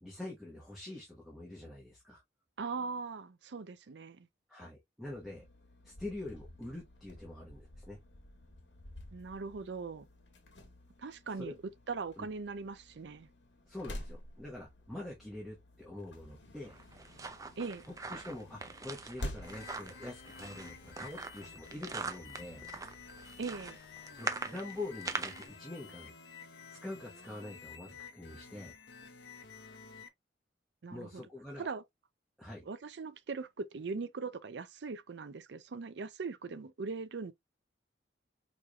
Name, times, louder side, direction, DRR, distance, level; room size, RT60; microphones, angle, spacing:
voice 1, 0.0-2.2 4.5-5.4 5.8-8.0 11.4-11.6 12.2-12.3 13.7-16.7 18.1-22.6 24.1-26.1 26.8-28.7 30.9-31.7 32.4-32.6, left 2 dB, ahead, 1.0 m, -45 dB
voice 2, 2.6-4.3 9.1-10.1 11.0-11.6 11.9-13.3 17.6-17.8 23.4-23.8 30.8-31.3 31.6-31.8 32.7-37.3, right 4 dB, 75° right, 0.5 m, -40 dB
sound 1, 5.0-23.7, left 1 dB, 85° left, 1.2 m, -51 dB
sound 2, 16.7-25.5, right 4 dB, 20° right, 0.5 m, -42 dB
sound 3, 19.4-30.1, left 6 dB, 65° left, 0.8 m, -51 dB
4.6 x 3.1 x 2.3 m
head